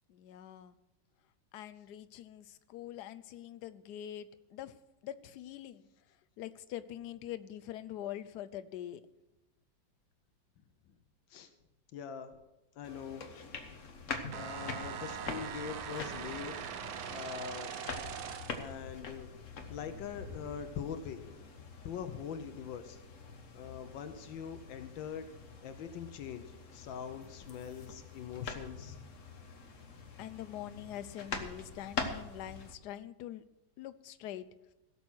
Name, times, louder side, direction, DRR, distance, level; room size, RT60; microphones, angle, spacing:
voice 1, 0.1-0.8 1.5-4.8 5.0-5.9 6.4-9.0 30.2-33.4 33.8-34.4, left 12 dB, 70° left, 12 dB, 1.1 m, -44 dB
voice 2, 11.9-12.4 12.8-13.3 14.3-17.7 18.5-19.3 19.7-21.4 21.8-23.0 23.5-25.3 25.6-26.5 26.7-29.0, left 7 dB, 85° left, 9 dB, 1.6 m, -43 dB
sound 1, 12.8-32.7, left 4 dB, 45° left, 1.4 m, -45 dB
sound 2, 14.3-18.7, right 8 dB, 85° right, 1.6 m, -41 dB
16.5 x 7.0 x 6.2 m, 0.96 s
omnidirectional pair, 2.0 m